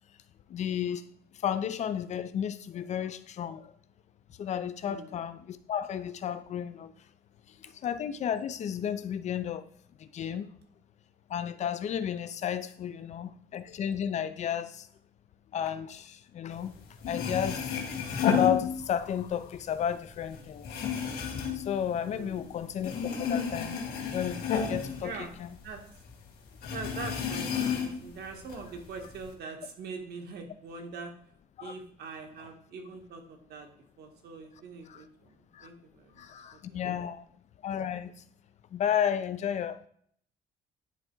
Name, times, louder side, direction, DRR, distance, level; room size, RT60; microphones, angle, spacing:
voice 1, 0.5-1.0 1.3-3.7 4.4-6.9 7.6-9.7 10.0-10.5 11.3-14.9 15.5-16.7 17.1-17.8 18.2-20.9 21.5-23.8 24.1-25.5 27.6-27.7 31.6-31.7 34.9-35.0 35.5-35.7 36.2-37.2 37.6-38.1 38.7-39.9, left 9 dB, 45° left, 12 dB, 0.5 m, -32 dB
voice 2, 4.8-5.2 7.6-7.7 22.0-22.5 25.0-25.3 25.6-25.8 26.7-31.1 31.6-33.7 34.0-36.9, right 4 dB, 70° right, 3 dB, 1.4 m, -43 dB
sound 1, 16.7-16.8 17.0-19.2 19.6-22.5 22.8-25.8 26.1-26.2 26.6-28.1 28.5-29.3, left 7 dB, 65° left, 1.8 m, -31 dB
10.0 x 3.5 x 4.5 m, 0.62 s
cardioid pair, 155°, 17 cm